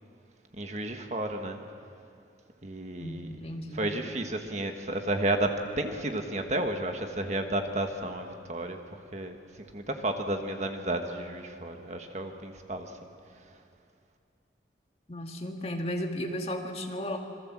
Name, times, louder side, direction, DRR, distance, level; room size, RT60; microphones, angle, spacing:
voice 1, 0.6-1.6 2.6-3.3 3.8-8.8 9.1-9.4 9.7-12.9, right 1 dB, 40° right, 5 dB, 1.5 m, -32 dB
voice 2, 3.0-3.9 15.1-17.2, left 1 dB, 35° left, 2 dB, 2.1 m, -34 dB
27.0 x 22.5 x 7.5 m, 2.4 s
head